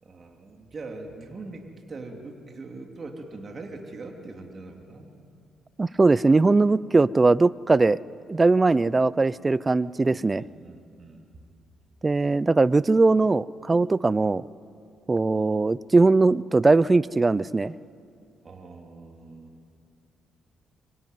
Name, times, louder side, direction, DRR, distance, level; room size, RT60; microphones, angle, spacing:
voice 1, 0.0-5.1 10.0-11.2 18.4-19.5, right 3 dB, 40° right, 2 dB, 3.3 m, -42 dB
voice 2, 5.8-8.0 8.3-10.4 12.0-14.4 15.1-17.7, right 3 dB, 25° right, 19 dB, 0.6 m, -20 dB
25.5 x 25.0 x 9.5 m, 2.5 s
cardioid pair, 90°, 0 cm